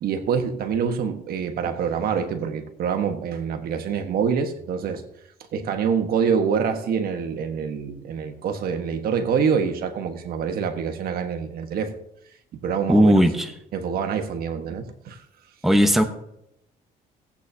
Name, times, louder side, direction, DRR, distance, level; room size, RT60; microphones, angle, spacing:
voice 1, 0.0-5.0 5.5-11.9 12.6-13.2 13.7-15.2, right 6 dB, 65° right, 7 dB, 1.4 m, -26 dB
voice 2, 12.9-13.5 15.6-16.0, equal, ahead, 5 dB, 1.0 m, -16 dB
17.5 x 8.5 x 2.8 m, 0.78 s
cardioid pair, 110°, 17 cm